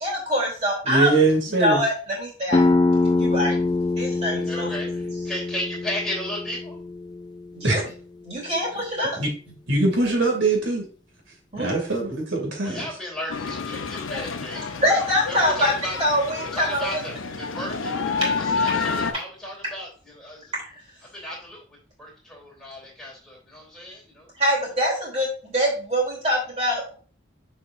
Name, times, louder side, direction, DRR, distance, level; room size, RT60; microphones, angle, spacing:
voice 1, 0.0-1.1 1.5-2.6 3.1-3.6 4.0-4.7 7.5-7.8 8.2-9.2 11.5-11.8 14.8-15.7 16.0-16.9 20.5-20.6 24.4-26.9, equal, 30° right, -3 dB, 3.0 m, -24 dB
voice 2, 0.8-1.8 7.6-7.8 9.2-9.3 9.7-10.9 11.6-12.8, right 2 dB, 75° right, 2 dB, 2.4 m, -22 dB
sound 1, 2.5-7.9, left 3 dB, 20° left, 0.3 m, -24 dB
voice 3, 4.4-6.8 12.6-14.7 15.3-16.0 16.4-20.5 21.1-21.6 22.0-24.3, left 1 dB, 5° left, -4 dB, 2.8 m, -34 dB
sound 2, 13.3-19.1, left 4 dB, 90° left, 0.7 m, -29 dB
6.8 x 5.3 x 2.5 m, 0.40 s
head